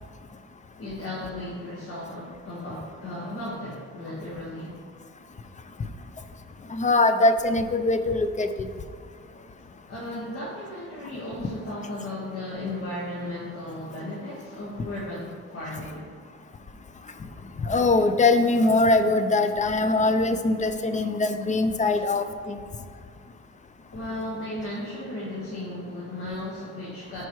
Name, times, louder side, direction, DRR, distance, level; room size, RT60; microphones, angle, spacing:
voice 1, 0.8-4.8 9.9-16.1 23.9-27.3, left 1 dB, 50° left, -6 dB, 1.6 m, -35 dB
voice 2, 6.7-8.7 17.6-22.6, left 2 dB, 25° left, 8 dB, 0.5 m, -22 dB
10.5 x 4.5 x 3.1 m, 2.1 s
cardioid pair, 90°, 30 cm